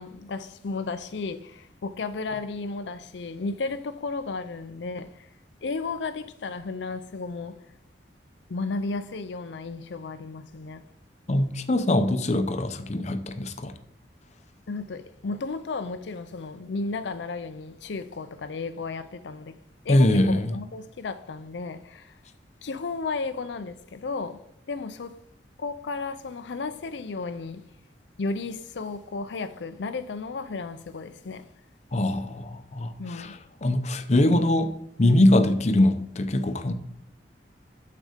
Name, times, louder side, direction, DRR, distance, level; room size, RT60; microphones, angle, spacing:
voice 1, 0.0-5.3 5.6-7.6 8.5-10.8 14.7-19.6 19.8-22.1 22.6-24.4 24.7-25.2 25.6-27.7 28.2-31.4 33.0-33.4, left 3 dB, 85° left, 0.5 m, -33 dB
voice 2, 11.3-13.7 19.9-20.6 31.9-34.7 35.0-36.7, left 1 dB, 40° left, 0.7 m, -22 dB
7.6 x 6.4 x 5.0 m
head